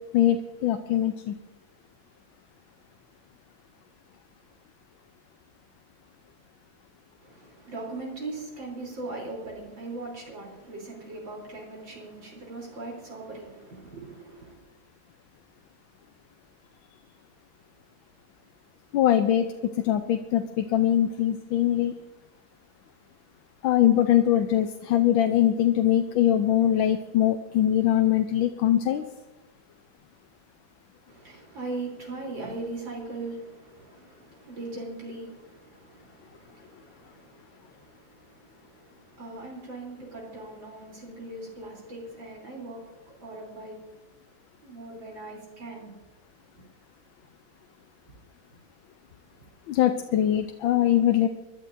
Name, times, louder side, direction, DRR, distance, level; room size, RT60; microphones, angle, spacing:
voice 1, 0.1-1.3 18.9-19.5 19.8-21.9 23.6-29.0 49.7-51.3, left 11 dB, 85° left, 1.4 m, -22 dB
voice 2, 7.2-14.6 31.1-43.8 44.6-45.9, right 2 dB, 75° right, 4.2 m, -40 dB
26.0 x 12.0 x 2.6 m
omnidirectional pair, 2.1 m